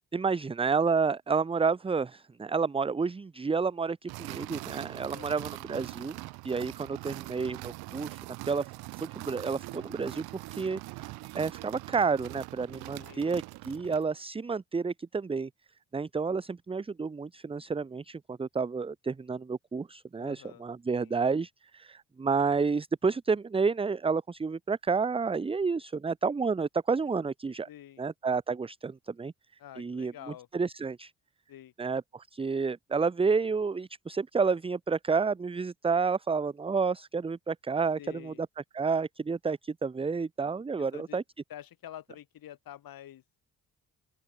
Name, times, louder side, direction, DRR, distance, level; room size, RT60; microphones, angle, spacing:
voice 1, 0.1-6.2 6.4-8.2 8.4-15.5 15.9-27.7 28.0-29.3 29.8-30.1 30.5-31.1 31.8-38.5 38.7-41.2, right 5 dB, 15° right, 0.5 m, -30 dB
sound 1, 4.1-14.1, right 22 dB, 85° right, 0.5 m, -42 dB
voice 2, 5.1-5.5 13.0-13.3 20.2-20.7 20.9-21.2 27.7-28.1 29.6-30.5 31.5-31.7 38.0-38.4 40.8-41.2 41.5-43.2, left 11 dB, 70° left, 1.8 m, -47 dB
open air
supercardioid pair, 65°, 37 cm